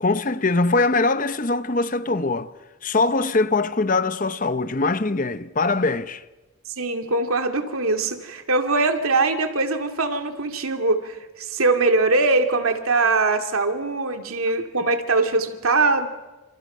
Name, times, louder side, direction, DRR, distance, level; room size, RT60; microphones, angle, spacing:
voice 1, 0.0-2.5 2.8-6.2, left 3 dB, 40° left, 0.8 m, -22 dB
voice 2, 6.8-16.1, right 3 dB, 80° right, 2.3 m, -22 dB
29.5 x 27.5 x 5.5 m
head